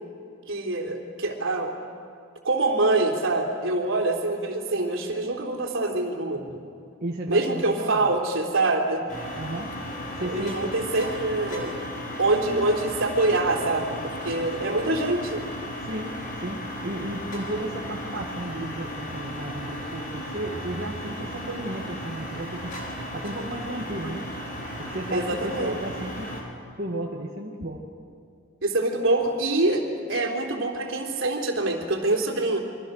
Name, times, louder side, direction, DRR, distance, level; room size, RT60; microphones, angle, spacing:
voice 1, 0.5-1.7 2.4-6.6 7.3-9.0 10.2-11.7 12.2-15.4 25.1-25.7 28.6-32.6, right 2 dB, 70° right, 2 dB, 3.4 m, -25 dB
voice 2, 7.0-8.1 9.3-9.7 10.2-10.8 15.9-16.1 16.4-22.7 23.1-24.2 24.8-26.3 26.8-27.8, right 1 dB, 50° right, -2 dB, 1.9 m, -34 dB
sound 1, 9.1-26.4, equal, 45° left, 5.1 m, -35 dB
28.0 x 23.5 x 6.5 m, 2.4 s
head